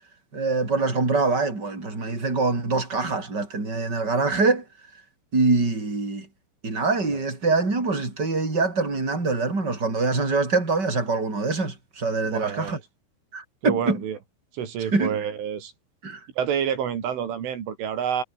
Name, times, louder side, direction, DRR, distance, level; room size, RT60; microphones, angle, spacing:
voice 1, 0.3-4.6 5.3-6.3 6.6-12.8 13.3-14.0 14.9-15.2 16.0-16.2, right 3 dB, 20° right, 6.9 m, -24 dB
voice 2, 12.3-12.8 13.6-14.2 14.5-15.7 16.4-18.2, right 8 dB, 80° right, 5.7 m, -28 dB
omnidirectional pair, 5.6 m